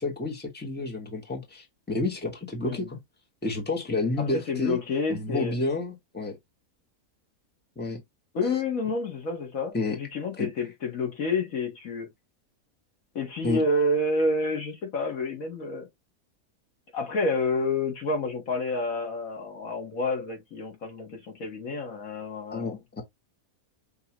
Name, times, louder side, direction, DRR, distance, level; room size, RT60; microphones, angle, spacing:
voice 1, 0.0-3.0 3.4-4.8 5.1-6.4 7.8-8.0 9.7-10.0 10.4-10.5 13.4-13.6 22.5-23.0, left 2 dB, 5° left, 1.3 m, -30 dB
voice 2, 4.2-5.5 8.3-12.1 13.2-15.9 16.9-22.7, left 2 dB, 65° left, 1.9 m, -29 dB
5.5 x 2.9 x 2.9 m
omnidirectional pair, 1.6 m